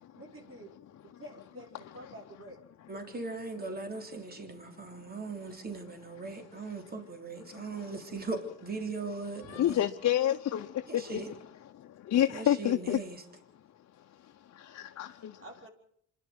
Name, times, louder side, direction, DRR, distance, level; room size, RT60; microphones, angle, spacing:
voice 1, 0.1-0.7 1.2-2.6 9.4-9.9 15.0-15.7, right 1 dB, 45° right, 6.0 m, -49 dB
voice 2, 2.9-9.8 10.9-11.3 12.3-13.2, right 3 dB, 30° right, 3.6 m, -39 dB
voice 3, 7.5-7.9 9.5-11.2 11.7-13.0 14.5-15.4, left 11 dB, 60° left, 1.0 m, -29 dB
26.5 x 11.0 x 9.4 m
cardioid pair, 90°, 30 cm